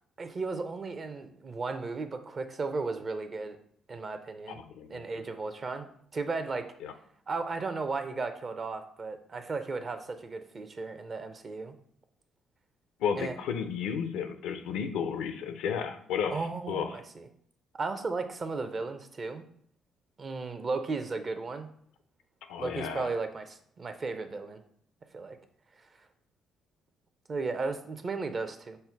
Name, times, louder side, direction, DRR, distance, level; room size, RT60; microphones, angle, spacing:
voice 1, 0.2-3.6 3.9-4.6 4.9-6.7 7.3-11.7 13.2-13.3 16.3-17.3 17.7-19.4 20.2-21.7 22.6-24.6 25.1-25.4 27.3-28.8, right 3 dB, 45° right, 8 dB, 0.6 m, -35 dB
voice 2, 4.5-5.0 6.8-6.9 13.0-16.9 22.5-23.1, left 7 dB, 75° left, 8 dB, 0.4 m, -33 dB
5.4 x 2.1 x 4.5 m, 0.63 s
hypercardioid pair, 50°, 0 cm